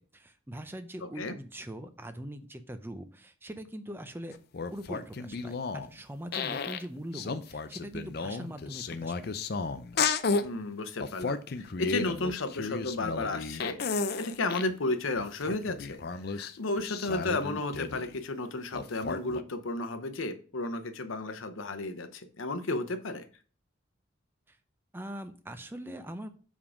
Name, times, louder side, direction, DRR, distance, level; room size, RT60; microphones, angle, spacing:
voice 1, 0.1-4.4 4.7-9.3 24.5-24.6 24.9-26.3, right 1 dB, 10° right, 0.5 m, -42 dB
sound 1, 4.3-5.9 6.3-6.9 7.1-10.5 11.0-14.7 15.2-18.2 18.7-19.4, left 4 dB, 50° left, 0.5 m, -33 dB
voice 2, 10.4-16.0 16.3-23.3, left 2 dB, 80° left, 0.8 m, -33 dB
7.3 x 3.6 x 4.9 m
head